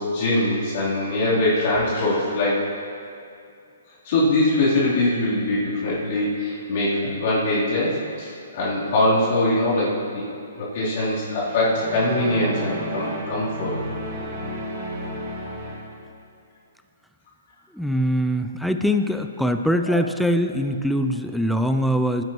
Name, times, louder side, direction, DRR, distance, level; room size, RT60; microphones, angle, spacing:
voice 1, 0.0-2.6 4.0-10.2 10.6-13.8 19.8-20.0, left 1 dB, 45° left, -10 dB, 3.5 m, -22 dB
sound 1, 11.4-16.1, right 1 dB, 35° right, 2.2 m, -32 dB
voice 2, 17.7-22.2, equal, ahead, 6 dB, 0.3 m, -22 dB
19.5 x 10.5 x 3.1 m, 2.5 s
hypercardioid pair, 160°, 0 cm